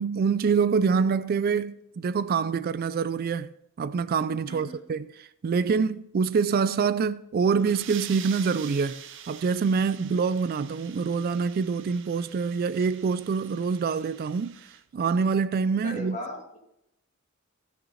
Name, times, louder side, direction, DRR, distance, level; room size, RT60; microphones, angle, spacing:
voice 1, 0.0-3.5 3.8-9.0 9.3-14.6 14.9-16.2, right 5 dB, 45° right, 0.3 m, -25 dB
voice 2, 4.5-4.8 15.8-16.6, left 1 dB, 35° left, 2.6 m, -37 dB
sound 1, 7.4-14.8, right 9 dB, 60° right, 0.8 m, -45 dB
15.5 x 5.9 x 4.1 m
head